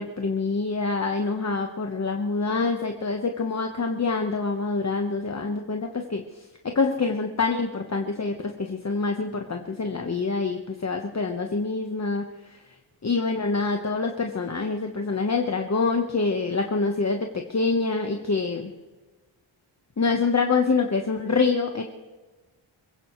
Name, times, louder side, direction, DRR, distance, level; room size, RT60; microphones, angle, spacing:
voice 1, 0.0-12.6 13.0-18.7 20.0-21.8, left 4 dB, 30° left, 3 dB, 1.1 m, -26 dB
23.5 x 16.0 x 3.1 m, 1.2 s
wide cardioid pair, 90°, 50 cm